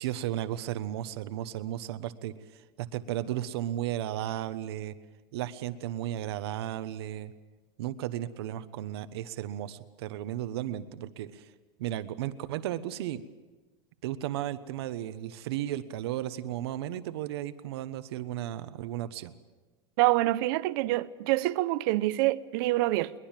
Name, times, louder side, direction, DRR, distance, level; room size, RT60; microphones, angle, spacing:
voice 1, 0.0-4.9 5.3-7.3 7.8-11.5 11.8-13.2 14.0-19.3, right 12 dB, 85° right, 1.1 m, -34 dB
voice 2, 20.0-23.1, right 18 dB, 60° right, 0.7 m, -26 dB
22.5 x 20.5 x 7.5 m
supercardioid pair, 160°, 13 cm